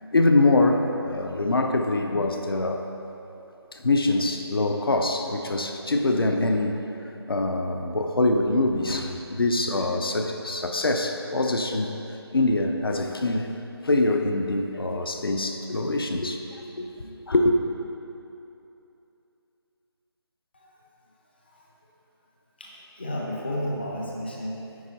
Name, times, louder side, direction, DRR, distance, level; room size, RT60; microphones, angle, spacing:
voice 1, 0.0-2.8 3.7-11.9 12.3-13.6 13.8-17.6, left 2 dB, 60° left, 4 dB, 0.6 m, -24 dB
voice 2, 22.6-24.9, left 1 dB, 25° left, -3 dB, 0.6 m, -33 dB
9.5 x 4.5 x 4.1 m, 2.8 s
figure-of-eight pair, 175°, 14 cm